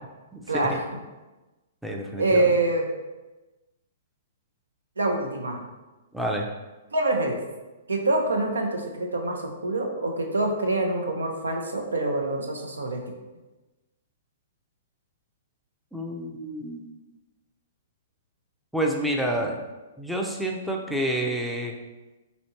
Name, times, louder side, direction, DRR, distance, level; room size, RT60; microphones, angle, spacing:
voice 1, 0.5-0.8 2.2-2.8 5.0-5.6 6.9-7.4 7.9-13.0, right 2 dB, 80° right, 3 dB, 0.6 m, -25 dB
voice 2, 1.8-2.5 6.1-6.5 15.9-16.9 18.7-19.6 20.0-21.7, right 1 dB, ahead, 0 dB, 0.5 m, -28 dB
4.3 x 2.8 x 2.8 m, 1.1 s
figure-of-eight pair, 120°, 0 cm